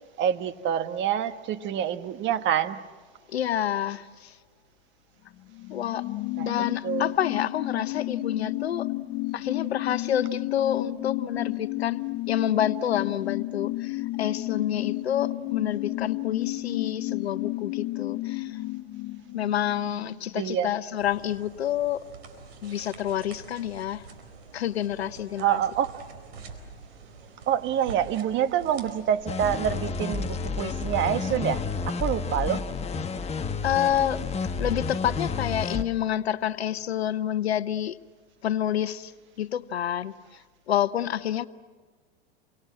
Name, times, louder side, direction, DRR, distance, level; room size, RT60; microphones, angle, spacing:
voice 1, 0.2-2.8 6.4-7.1 20.3-20.7 25.4-26.0 27.5-32.6, right 10 dB, 40° right, 1.2 m, -27 dB
voice 2, 3.3-4.4 5.7-6.0 6.4-8.9 9.3-18.6 19.3-22.0 22.6-24.0 24.5-25.6 33.3-38.0 38.4-39.1 39.4-40.4 40.7-41.5, left 10 dB, 85° left, 0.8 m, -28 dB
sound 1, 5.3-20.6 20.9-21.0, left 18 dB, 45° left, 0.9 m, -32 dB
sound 2, 21.0-29.5, right 4 dB, 80° right, 4.2 m, -46 dB
sound 3, 29.3-35.8, left 4 dB, 20° left, 1.3 m, -30 dB
29.0 x 24.5 x 7.7 m
hypercardioid pair, 95°, 31 cm